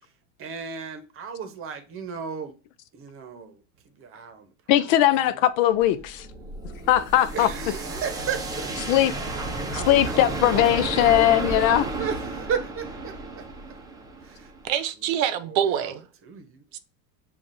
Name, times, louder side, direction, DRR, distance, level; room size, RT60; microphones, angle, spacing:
voice 1, 0.4-2.5 2.9-5.5 7.3-8.8 9.4-10.1 10.4-11.0 11.7-13.5 14.2-14.5 15.0-16.6, right 6 dB, 30° right, 0.8 m, -35 dB
voice 2, 4.7-6.3 6.9-7.5 8.9-9.1 9.9-11.9, left 12 dB, 75° left, 0.6 m, -20 dB
sound 1, 5.8-14.7, right 2 dB, 10° right, 0.5 m, -32 dB
voice 3, 14.6-16.0 16.7-16.8, right 9 dB, 75° right, 0.8 m, -25 dB
7.2 x 2.4 x 2.6 m
supercardioid pair, 135°, 40 cm